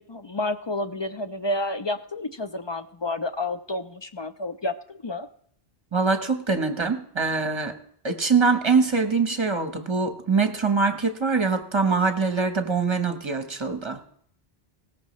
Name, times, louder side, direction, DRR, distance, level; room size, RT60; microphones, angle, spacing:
voice 1, 0.0-5.3, left 2 dB, 40° left, 9 dB, 0.4 m, -30 dB
voice 2, 5.9-7.7 8.0-14.1, right 4 dB, 30° right, 7 dB, 1.0 m, -23 dB
17.5 x 14.5 x 3.1 m, 0.65 s
omnidirectional pair, 1.1 m